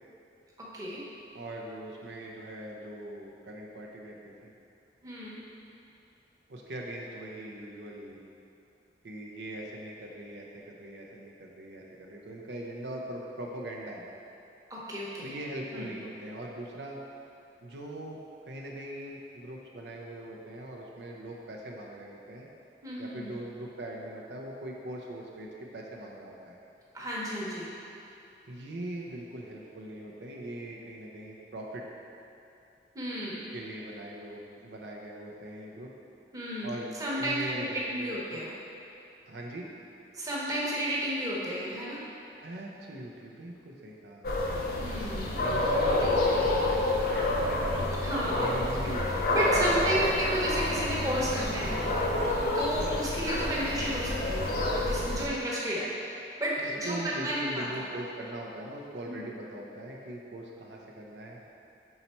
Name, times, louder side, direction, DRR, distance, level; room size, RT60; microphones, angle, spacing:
voice 1, 1.3-4.5 6.5-8.2 9.0-14.1 15.2-17.0 17.6-18.2 18.5-22.5 23.0-26.6 28.5-31.8 33.5-35.9 36.6-36.9 37.2-38.4 39.3-39.7 42.4-44.5 45.4-47.9 48.4-50.1 52.7-52.9 56.6-61.4, right 1 dB, 80° right, -2 dB, 0.6 m, -41 dB
voice 2, 5.0-5.4 14.7-15.3 15.7-15.9 22.8-23.3 26.9-27.7 32.9-33.4 36.3-36.7 37.0-38.5 40.1-42.0 44.8-45.4 46.0-46.1 48.0-49.0 49.3-51.7 52.5-54.6 54.8-55.9 56.1-57.7 59.0-59.2, equal, 20° right, -6 dB, 0.9 m, -32 dB
sound 1, 44.2-55.3, left 1 dB, 55° left, 0.6 m, -28 dB
5.6 x 4.1 x 4.3 m, 2.7 s
head